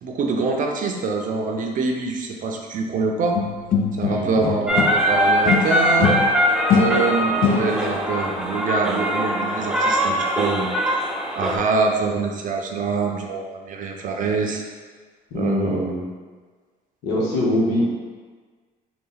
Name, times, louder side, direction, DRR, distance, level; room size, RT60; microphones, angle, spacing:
voice 1, 0.0-3.4 4.0-6.1 6.7-14.6 15.4-15.9, right 4 dB, 50° right, 1 dB, 0.6 m, -25 dB
sound 1, 3.3-5.1 5.4-8.0, left 5 dB, 60° left, 0.4 m, -23 dB
voice 2, 4.0-4.5 15.3-16.0 17.0-17.8, left 1 dB, 85° left, -5 dB, 1.1 m, -23 dB
sound 2, 4.7-11.6, equal, 5° right, 0.4 m, -22 dB
3.9 x 2.4 x 3.9 m, 1.5 s
cardioid pair, 110°, 17 cm